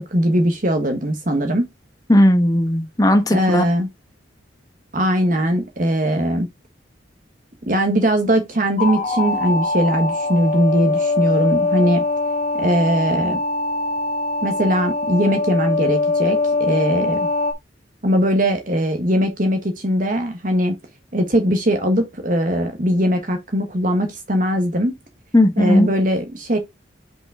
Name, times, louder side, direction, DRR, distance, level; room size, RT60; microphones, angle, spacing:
voice 1, 0.0-1.7 3.3-3.9 4.9-6.5 7.7-12.0 12.5-13.4 14.4-17.3 18.0-20.7 21.1-24.9 25.6-26.6, equal, 45° right, 1.3 m, -20 dB
voice 2, 2.1-3.6 25.3-25.9, left 1 dB, 20° left, 1.1 m, -15 dB
sound 1, 8.8-17.5, left 3 dB, 35° left, 1.5 m, -22 dB
5.9 x 5.3 x 3.5 m
head